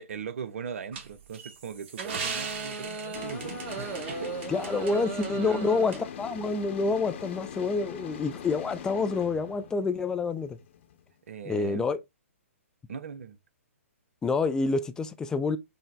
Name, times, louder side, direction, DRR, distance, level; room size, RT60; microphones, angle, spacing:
voice 1, 0.0-4.3 5.3-5.8 11.3-11.9 12.9-13.4, right 7 dB, 60° right, 0.6 m, -39 dB
sound 1, 0.9-4.9 5.2-5.3 5.9-6.0, right 5 dB, 45° right, 1.2 m, -38 dB
sound 2, 2.0-6.2, right 5 dB, 30° right, 1.2 m, -38 dB
sound 3, 3.1-11.1, left 8 dB, 55° left, 0.8 m, -42 dB
voice 2, 4.5-10.6 11.5-12.0 14.2-15.6, left 4 dB, 10° left, 0.4 m, -28 dB
5.5 x 2.1 x 3.5 m
hypercardioid pair, 130°, 8 cm